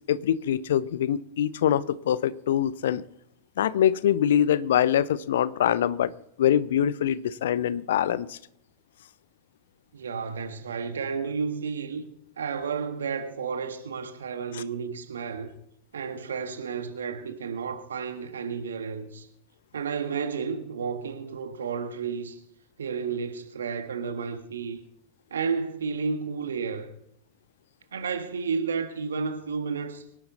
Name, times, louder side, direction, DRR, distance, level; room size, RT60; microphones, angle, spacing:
voice 1, 0.1-3.0 3.6-6.1 6.4-8.4 14.5-14.6, left 10 dB, 60° left, 0.7 m, -24 dB
voice 2, 9.9-12.0 12.4-15.5 15.9-19.3 19.7-22.4 22.8-24.8 25.3-26.9 27.9-30.0, right 5 dB, 65° right, 1.6 m, -32 dB
23.5 x 11.0 x 4.2 m
figure-of-eight pair, 90°, 0 cm